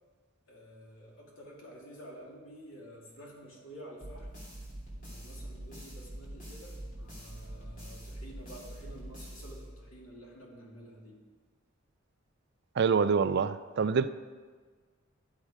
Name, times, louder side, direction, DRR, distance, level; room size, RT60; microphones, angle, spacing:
voice 1, 0.5-4.3 5.0-11.2, equal, 75° left, -3 dB, 2.7 m, -50 dB
sound 1, 4.0-10.1, right 1 dB, 40° left, 3.2 m, -44 dB
voice 2, 12.8-14.1, right 5 dB, 55° right, 13 dB, 0.4 m, -26 dB
12.5 x 7.4 x 5.0 m, 1.5 s
head